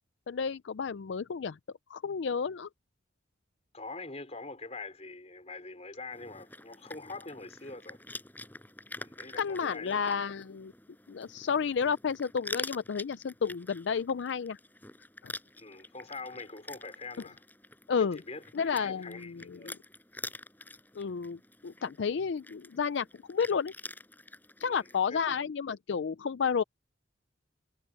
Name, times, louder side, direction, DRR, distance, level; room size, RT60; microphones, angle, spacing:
voice 1, 0.3-1.6 1.9-2.7 9.4-10.7 11.1-14.6 15.2-15.3 17.9-18.2 18.5-19.8 20.9-23.7 24.6-26.6, left 6 dB, 70° left, 0.4 m, -31 dB
voice 2, 3.7-8.0 9.0-9.9 15.5-17.4 18.0-19.7 24.6-24.8 25.1-25.4, left 3 dB, 35° left, 4.9 m, -44 dB
sound 1, 6.1-25.0, left 2 dB, 10° left, 6.1 m, -47 dB
head